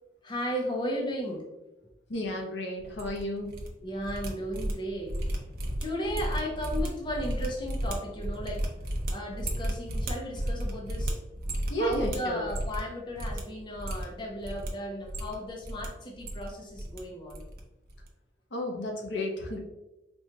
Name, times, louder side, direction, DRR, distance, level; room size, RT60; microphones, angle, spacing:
voice 1, 0.2-1.5 3.8-5.1 5.8-8.7 9.1-11.2 11.8-17.4, equal, 25° left, -1 dB, 0.6 m, -35 dB
voice 2, 2.1-3.6 11.7-12.4 18.5-19.6, equal, 70° left, 0 dB, 0.7 m, -32 dB
sound 1, 2.8-3.7 3.9-12.9 13.1-13.4 13.7-14.7 15.0-15.9 16.1-17.0 17.3-17.6 17.9-18.1, right 1 dB, 55° right, 0.6 m, -33 dB
4.4 x 2.3 x 2.8 m, 0.97 s
head